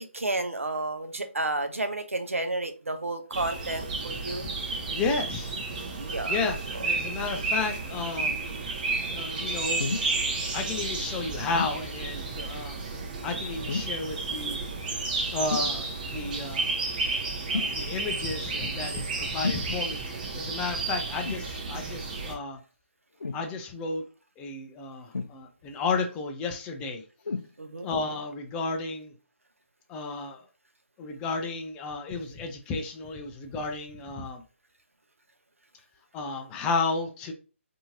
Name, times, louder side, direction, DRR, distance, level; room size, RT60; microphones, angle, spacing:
voice 1, 0.0-4.5 5.9-6.4 6.7-6.9 27.6-27.9, right 2 dB, 90° right, 7 dB, 0.7 m, -31 dB
sound 1, 3.3-22.3, right 3 dB, 40° right, 0.8 m, -32 dB
voice 2, 4.9-5.5 6.3-6.6 6.8-8.3 9.1-9.9 10.5-12.8 13.2-14.6 15.3-16.8 17.5-22.6 23.3-24.0 24.4-27.0 27.8-29.1 29.9-30.4 31.0-34.4 36.1-37.3, left 4 dB, 10° left, 4 dB, 0.3 m, -32 dB
sound 2, 9.8-10.1 11.5-11.8 13.7-14.0 15.5-15.7 17.5-17.8 19.4-19.7 21.2-21.5 23.2-23.5 25.1-25.7 27.2-27.5 28.3-28.4, left 4 dB, 80° left, 0.4 m, -32 dB
2.8 x 2.6 x 2.8 m, 0.36 s
figure-of-eight pair, 150°, 7 cm